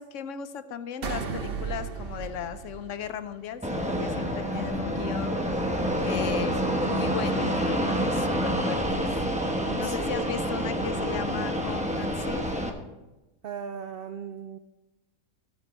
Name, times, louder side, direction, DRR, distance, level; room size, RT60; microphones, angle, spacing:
voice 1, 0.0-5.4 6.0-6.5 6.8-9.2 9.8-12.5, left 8 dB, 65° left, 11 dB, 1.0 m, -36 dB
sound 1, 1.0-3.6, right 6 dB, 50° right, 0.9 m, -35 dB
Fixed-wing aircraft airplane, 3.6-12.7, equal, 5° right, 0.9 m, -28 dB
voice 2, 9.6-10.2 13.4-14.6, right 7 dB, 75° right, 9 dB, 0.5 m, -38 dB
15.0 x 7.1 x 4.3 m, 1.0 s
omnidirectional pair, 1.5 m